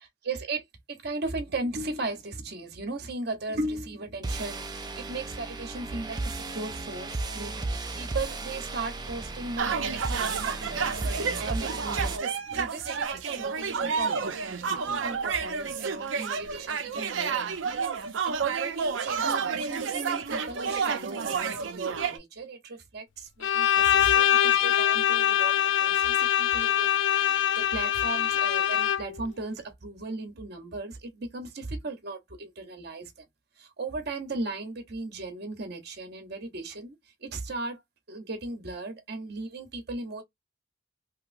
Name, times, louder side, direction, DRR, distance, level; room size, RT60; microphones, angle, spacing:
voice 1, 0.0-7.6 8.0-12.2 12.5-33.2 33.6-36.9 37.2-37.8 38.1-40.2, right 3 dB, 55° right, 0.9 m, -37 dB
sound 1, 4.2-12.2, right 2 dB, 20° right, 0.4 m, -35 dB
sound 2, 9.6-22.2, right 5 dB, 85° right, 0.6 m, -30 dB
Bowed string instrument, 23.4-29.2, left 10 dB, 70° left, 0.4 m, -23 dB
3.0 x 3.0 x 2.5 m
head